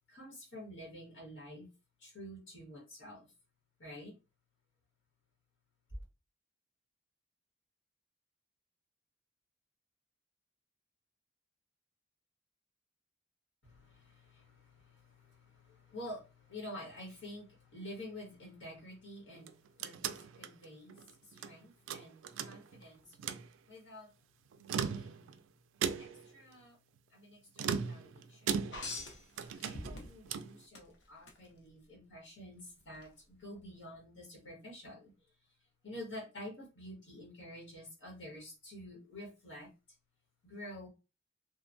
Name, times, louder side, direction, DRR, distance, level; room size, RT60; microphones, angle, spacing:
voice 1, 0.1-1.7 2.0-3.3 3.8-4.1 13.6-23.2 23.7-24.1 24.6-25.4 26.0-26.8 27.1-28.6 29.7-35.1 35.8-39.7 40.4-40.9, left 1 dB, 80° left, 1.3 m, -49 dB
sound 1, 19.3-21.5 21.9-22.8 23.1-23.5 24.5-25.4 25.8-26.3 27.6-29.1 29.4-30.6, right 7 dB, 85° right, 0.3 m, -38 dB
sound 2, 28.7-30.3 30.7-31.4 32.9-33.1, left 2 dB, 65° left, 0.7 m, -43 dB
3.0 x 2.2 x 2.5 m
head